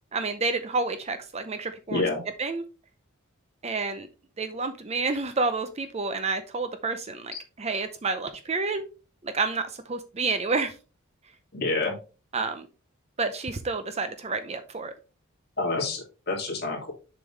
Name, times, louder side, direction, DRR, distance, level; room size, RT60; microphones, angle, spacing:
voice 1, 0.1-2.1 2.4-2.6 3.6-4.1 4.4-8.9 9.2-10.7 12.3-12.7 13.2-14.9, right 3 dB, 30° right, 10 dB, 0.5 m, -29 dB
voice 2, 1.9-2.2 11.5-12.0 15.6-16.9, left 3 dB, 45° left, -1 dB, 2.3 m, -28 dB
7.1 x 5.2 x 3.2 m, 0.33 s
head